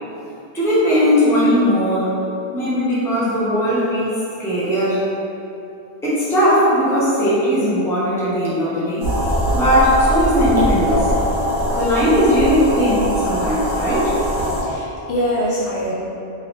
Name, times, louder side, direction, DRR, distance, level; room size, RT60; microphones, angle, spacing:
voice 1, 0.5-2.1 2.5-5.0 6.0-9.1 9.5-11.1 11.8-14.1, equal, 5° left, -10 dB, 0.6 m, -18 dB
sound 1, 9.0-14.6, equal, 55° right, 0.9 m, -21 dB
voice 2, 14.4-15.9, equal, 65° left, -7 dB, 0.7 m, -24 dB
2.9 x 2.8 x 3.1 m, 2.8 s
omnidirectional pair, 1.2 m